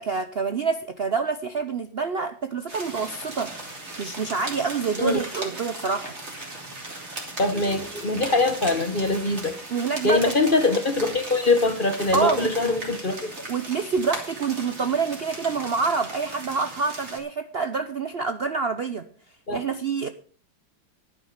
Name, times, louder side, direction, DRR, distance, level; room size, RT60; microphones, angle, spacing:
voice 1, 0.0-3.5 4.0-6.1 9.7-10.3 12.1-12.5 13.5-19.1 19.5-20.1, right 5 dB, 85° right, 0.5 m, -27 dB
sound 1, 2.7-17.2, right 2 dB, 35° right, 3.2 m, -37 dB
voice 2, 7.4-9.6 10.0-13.3 19.5-19.6, left 3 dB, 35° left, 1.0 m, -23 dB
11.5 x 9.4 x 6.6 m
omnidirectional pair, 2.2 m